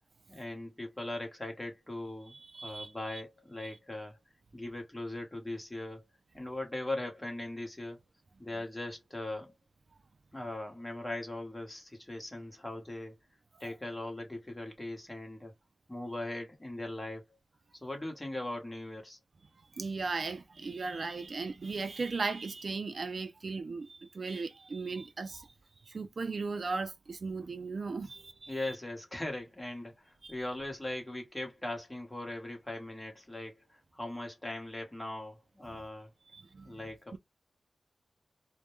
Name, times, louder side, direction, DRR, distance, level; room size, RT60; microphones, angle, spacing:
voice 1, 0.3-2.4 2.6-4.2 4.5-6.0 6.3-8.0 8.4-9.5 10.3-13.1 13.6-15.5 15.9-17.2 17.8-19.2 28.5-36.1 36.6-37.2, left 1 dB, 15° left, 0.9 m, -40 dB
voice 2, 2.5-3.2 19.8-25.5 25.9-28.5 30.2-30.3 36.3-36.7, right 4 dB, 60° right, 0.3 m, -37 dB
2.1 x 2.1 x 3.0 m
wide cardioid pair, 75°, 0 cm